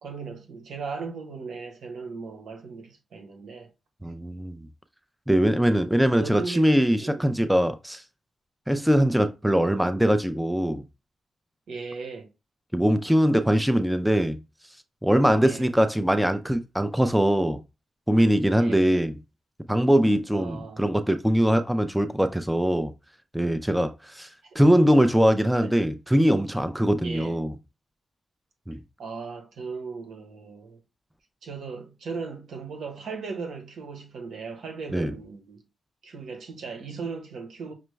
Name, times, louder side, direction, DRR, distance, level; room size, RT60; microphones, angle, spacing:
voice 1, 0.0-3.7 6.1-6.7 7.0-7.5 11.7-12.3 15.4-15.7 18.6-18.9 20.3-20.8 24.4-24.9 25.6-25.7 27.0-27.4 29.0-30.8 31.4-35.6 36.0-37.7, right 4 dB, 80° right, 1.1 m, -37 dB
voice 2, 4.0-4.6 5.3-8.0 8.7-10.8 12.7-14.4 15.0-17.6 18.1-19.2 19.7-22.9 23.3-24.3 24.5-27.5 28.7-28.8 34.9-35.1, equal, 5° right, 0.4 m, -22 dB
5.9 x 2.2 x 3.2 m
cardioid pair, 80°, 0 cm